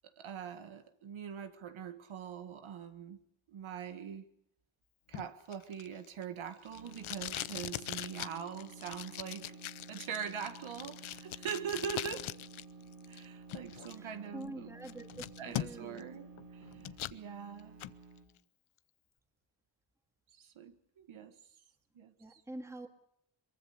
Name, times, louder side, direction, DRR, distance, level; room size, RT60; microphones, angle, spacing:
voice 1, 0.2-3.2 3.5-4.3 5.1-9.6 9.9-12.4 13.1-14.7 15.4-16.9 17.1-17.8 20.3-21.4 22.0-22.4, right 7 dB, 85° right, 1.9 m, -43 dB
Packing tape duct tape, 5.1-12.6 12.9-13.9 14.4-14.5 14.8-16.0 16.4-17.2 17.6-17.9, left 13 dB, 90° left, 0.8 m, -42 dB
sound 1, 6.5-18.3, right 4 dB, 45° right, 4.4 m, -53 dB
voice 2, 13.9-16.1 22.2-22.9, right 1 dB, 5° right, 2.3 m, -46 dB
23.5 x 23.0 x 6.7 m
wide cardioid pair, 125°, 47 cm